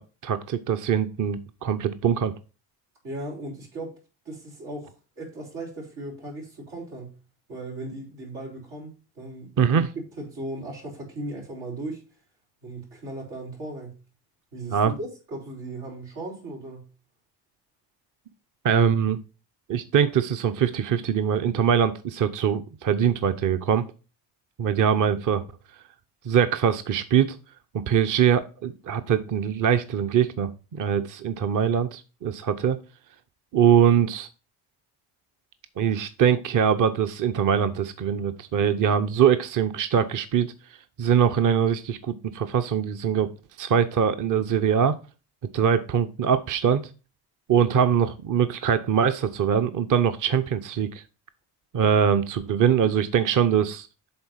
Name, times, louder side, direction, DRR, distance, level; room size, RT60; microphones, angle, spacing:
voice 1, 0.0-2.3 9.6-9.9 14.7-14.9 18.6-19.2 19.7-23.8 24.6-25.4 26.3-27.4 27.7-32.8 33.5-34.3 35.8-40.5 41.0-43.3 43.6-45.0 45.5-46.8 47.5-51.0 51.7-53.9, right 8 dB, 45° right, 0.7 m, -22 dB
voice 2, 3.0-4.0 4.2-7.2 7.5-12.1 12.6-14.0 14.5-16.9, right 2 dB, 90° right, 4.1 m, -37 dB
7.9 x 3.7 x 5.6 m
supercardioid pair, 65°, 46 cm